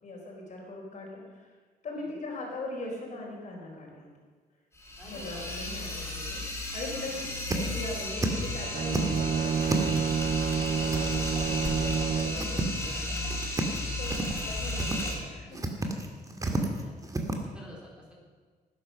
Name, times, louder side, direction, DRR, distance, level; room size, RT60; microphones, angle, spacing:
voice 1, 0.0-1.6 1.8-4.1 5.1-6.4 6.7-13.2 14.0-14.2 14.4-15.6, left 2 dB, 50° left, -1 dB, 4.6 m, -40 dB
sound 1, 4.8-15.1, left 1 dB, 15° left, 3.5 m, -34 dB
voice 2, 5.0-5.5 6.0-6.1 7.1-7.3 14.0-14.3 16.8-17.0 17.3-18.2, equal, 5° right, -3 dB, 3.7 m, -50 dB
sound 2, 5.6-5.8 6.2-6.3 6.7-6.8 7.1-8.5 8.8-10.2 10.9-11.4 11.6-11.7 12.1-12.9 13.2-13.8 14.1-14.5 14.8-15.2 15.5-17.4, right 2 dB, 20° right, 2.0 m, -32 dB
Bowed string instrument, 8.7-12.5, right 7 dB, 50° right, 0.5 m, -29 dB
18.5 x 10.5 x 6.5 m, 1.5 s
cardioid pair, 125°, 16 cm